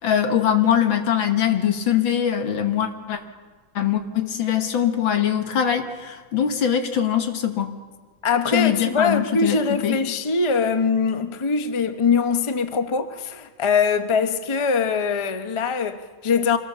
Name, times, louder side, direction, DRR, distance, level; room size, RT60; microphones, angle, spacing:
voice 1, 0.0-3.2 3.8-7.8 8.5-10.0, left 9 dB, 80° left, 2.3 m, -22 dB
voice 2, 8.2-16.6, left 5 dB, 25° left, 0.6 m, -22 dB
25.5 x 18.0 x 6.9 m
omnidirectional pair, 2.1 m